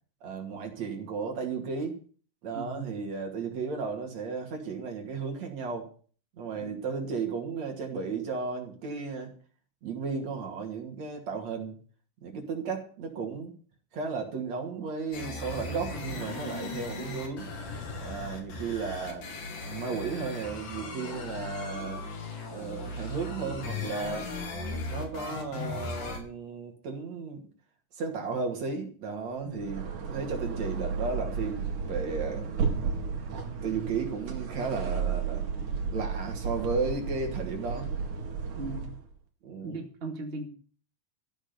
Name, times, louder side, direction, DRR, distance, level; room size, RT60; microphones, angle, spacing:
voice 1, 0.2-2.0 2.4-5.9 6.4-9.3 9.8-11.8 12.2-13.5 13.9-17.5 18.0-19.3 19.7-22.0 22.5-24.3 24.9-27.5 28.0-32.5 33.6-35.4 35.9-37.9 39.4-39.8, right 4 dB, 60° right, 2 dB, 3.6 m, -34 dB
voice 2, 2.5-2.9 6.5-7.0 29.4-29.6 35.5-35.8 38.6-38.9 39.6-40.5, right 2 dB, 20° right, 2 dB, 2.1 m, -39 dB
sound 1, 15.1-26.2, left 3 dB, 80° left, 4.2 m, -37 dB
sound 2, 29.5-39.1, right 6 dB, 75° right, 3.5 m, -33 dB
14.5 x 6.3 x 9.6 m, 0.42 s
omnidirectional pair, 3.6 m